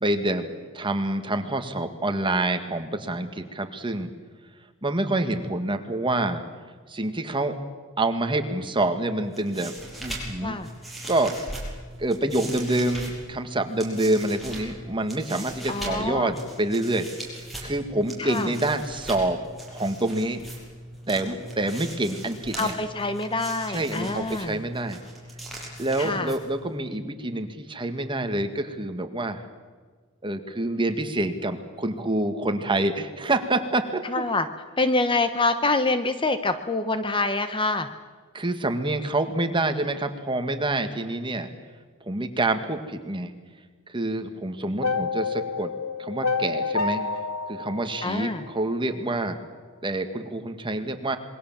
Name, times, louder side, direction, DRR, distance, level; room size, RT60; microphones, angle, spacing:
voice 1, 0.0-4.1 4.8-6.4 6.9-7.6 8.0-9.7 10.0-10.6 11.1-11.3 12.0-17.1 17.6-19.4 19.7-20.4 21.1-22.7 23.7-25.0 25.8-29.4 30.2-34.3 38.3-41.5 42.0-43.3 43.9-45.7 46.0-47.0 47.5-49.4 49.8-51.2, right 2 dB, 25° right, 7 dB, 1.9 m, -27 dB
sound 1, 9.2-26.8, right 1 dB, ahead, 6.6 m, -40 dB
voice 2, 15.7-16.3 18.2-18.5 22.6-24.6 26.0-26.3 34.0-34.5 34.8-37.9 48.0-48.4, left 3 dB, 25° left, 10 dB, 1.1 m, -26 dB
sound 2, 44.8-49.0, left 4 dB, 80° left, 1.2 m, -29 dB
27.0 x 22.0 x 7.5 m, 1.5 s
head